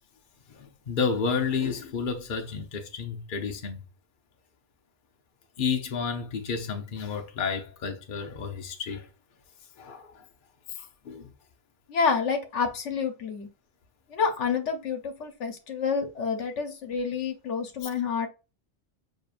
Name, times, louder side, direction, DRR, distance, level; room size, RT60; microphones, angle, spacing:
voice 1, 0.5-3.8 5.6-9.1 9.8-10.2 10.7-11.3 17.8-17.9, left 5 dB, 50° left, 0.9 m, -31 dB
voice 2, 11.9-13.5 14.1-18.3, left 5 dB, 80° left, 1.1 m, -28 dB
6.5 x 2.7 x 2.4 m
omnidirectional pair, 1.2 m